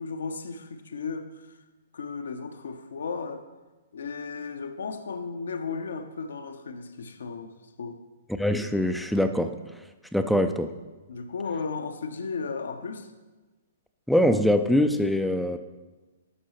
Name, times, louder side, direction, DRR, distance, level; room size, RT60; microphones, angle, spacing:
voice 1, 0.0-1.6 1.9-3.4 3.9-8.0 11.1-13.1, left 4 dB, 65° left, 8 dB, 0.6 m, -35 dB
voice 2, 8.4-9.6 10.1-10.7 14.1-15.6, left 1 dB, ahead, 7 dB, 0.3 m, -23 dB
12.0 x 6.1 x 3.0 m, 1.2 s
figure-of-eight pair, 115°, 0 cm